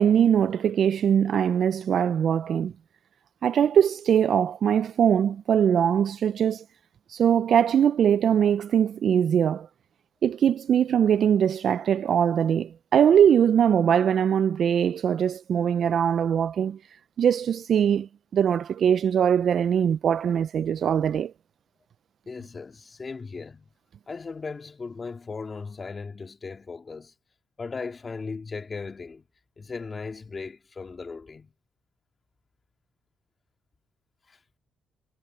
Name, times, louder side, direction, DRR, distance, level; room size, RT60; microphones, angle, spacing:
voice 1, 0.0-2.7 3.4-6.6 7.1-9.7 10.2-16.8 17.2-21.3, right 8 dB, 60° right, 0.4 m, -22 dB
voice 2, 22.3-23.7 24.1-27.1 27.6-29.2 29.6-31.5 34.3-34.4, left 4 dB, 35° left, 2.1 m, -37 dB
cardioid pair, 90°, 0 cm